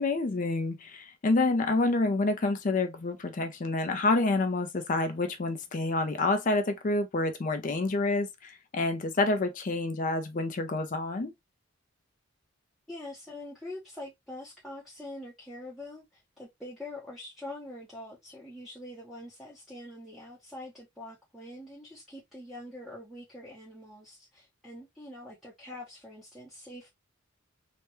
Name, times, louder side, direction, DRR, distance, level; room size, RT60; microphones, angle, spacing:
voice 1, 0.0-11.3, left 2 dB, 40° left, 0.4 m, -28 dB
voice 2, 12.9-26.9, left 1 dB, ahead, 0.7 m, -44 dB
3.3 x 2.2 x 2.9 m
head